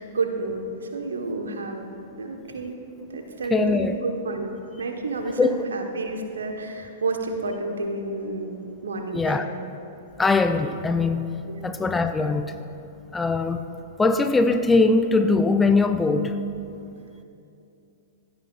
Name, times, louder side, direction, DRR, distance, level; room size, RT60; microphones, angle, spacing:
voice 1, 0.0-1.9 2.2-2.8 3.1-9.5 11.5-11.6, right 3 dB, 70° right, 1.2 m, -30 dB
voice 2, 3.5-4.0 5.4-5.6 9.1-9.5 10.2-11.3 11.6-12.5 13.1-13.6 14.0-16.4, left 3 dB, 10° left, 0.5 m, -21 dB
16.5 x 12.0 x 2.5 m
figure-of-eight pair, 105°, 0 cm